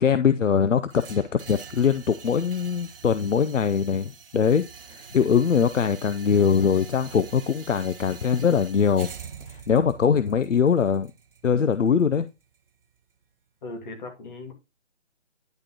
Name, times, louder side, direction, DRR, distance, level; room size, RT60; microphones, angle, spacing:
voice 1, 0.0-9.1 9.4-11.1 11.4-12.3, left 7 dB, 80° left, 0.7 m, -22 dB
sound 1, 0.9-12.9, right 6 dB, 50° right, 0.9 m, -45 dB
voice 2, 13.6-14.5, left 2 dB, 40° left, 2.3 m, -38 dB
10.5 x 5.3 x 2.9 m
figure-of-eight pair, 145°, 37 cm